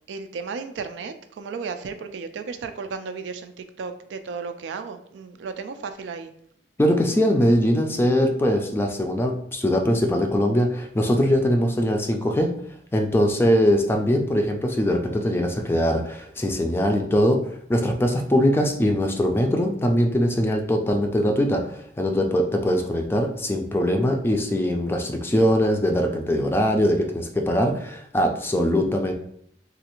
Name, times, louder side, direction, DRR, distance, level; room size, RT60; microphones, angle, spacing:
voice 1, 0.1-6.3, right 5 dB, 85° right, 9 dB, 0.3 m, -34 dB
voice 2, 6.8-12.5 12.9-29.1, equal, 15° left, 3 dB, 0.4 m, -22 dB
3.2 x 2.4 x 2.9 m, 0.69 s
head